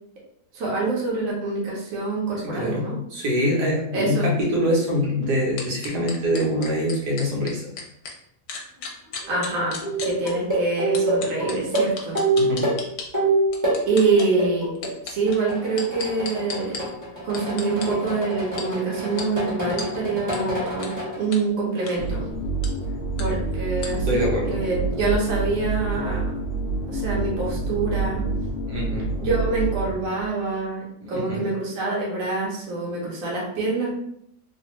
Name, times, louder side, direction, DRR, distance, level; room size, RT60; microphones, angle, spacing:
voice 1, 0.5-3.0 3.9-4.3 9.3-9.8 10.0-12.2 13.9-14.7 15.0-16.7 17.2-22.2 23.2-24.1 24.4-26.2 26.9-28.2 29.2-33.9, right 3 dB, 55° right, -4 dB, 1.2 m, -25 dB
voice 2, 2.4-7.6 12.3-12.6 24.0-24.6 28.7-29.1 31.0-31.4, equal, 75° right, -3 dB, 1.5 m, -24 dB
sound 1, 5.6-8.1 8.5-10.3 10.9-13.1 13.5-14.3 14.8-16.8 17.3-17.9 18.6-18.7 19.2-19.3 19.8-19.9 20.3-20.4 20.8-20.9 21.3-21.4 21.8-22.0 22.6-22.7 23.2-23.3 23.8-23.9, left 5 dB, 70° left, 1.1 m, -34 dB
sound 2, 9.2-9.4 9.8-13.8 14.1-15.0 15.3-21.2 21.8-22.2 23.2-23.4, right 2 dB, 15° right, 0.8 m, -26 dB
sound 3, 22.0-30.3, right 3 dB, 90° left, 0.5 m, -27 dB
3.2 x 2.4 x 3.0 m, 0.73 s
omnidirectional pair, 1.8 m